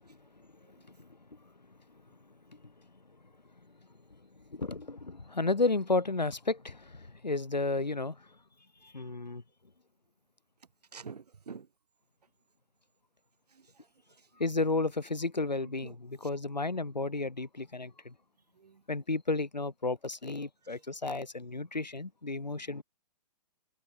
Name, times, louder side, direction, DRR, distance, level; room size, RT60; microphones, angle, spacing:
voice 1, 0.0-1.4 2.5-2.6 4.5-8.3 8.8-9.4 14.4-18.1 18.9-22.8, left 3 dB, 90° left, 0.7 m, -33 dB
voice 2, 10.9-11.7 13.5-14.4 15.6-16.0 16.2-16.3 18.5-18.8 20.6-20.8, right 6 dB, 70° right, 0.8 m, -49 dB
figure-of-eight pair, 125°, 21 cm